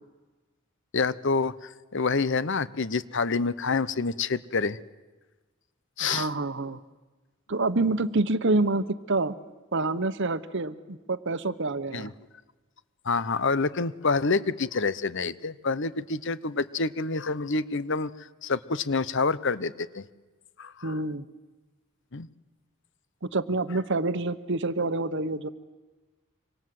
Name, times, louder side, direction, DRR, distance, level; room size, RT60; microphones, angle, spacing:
voice 1, 0.9-4.8 6.0-6.3 11.9-12.1 13.0-18.1 18.4-20.0 20.6-21.0 22.1-22.3, left 4 dB, 60° left, 16 dB, 0.9 m, -27 dB
voice 2, 6.0-6.8 7.5-9.3 9.7-12.1 20.8-21.3 23.2-25.5, right 2 dB, 55° right, 14 dB, 1.0 m, -27 dB
26.5 x 25.5 x 7.8 m, 1.2 s
head